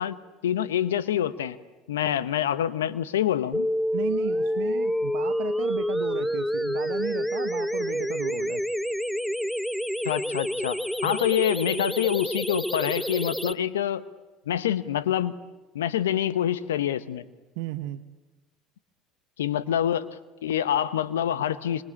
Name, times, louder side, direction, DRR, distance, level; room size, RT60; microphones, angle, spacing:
voice 1, 0.0-1.6 1.9-3.7 10.0-14.0 14.5-15.3 15.7-17.2 19.4-20.1 20.4-21.8, left 10 dB, 80° left, 15 dB, 1.0 m, -26 dB
sound 1, 3.5-13.5, equal, ahead, 0.9 m, -28 dB
voice 2, 3.9-8.6 11.0-11.2 17.6-18.0, right 16 dB, 65° right, 8 dB, 0.9 m, -35 dB
26.0 x 25.5 x 8.8 m, 1.2 s
hypercardioid pair, 70°, 0 cm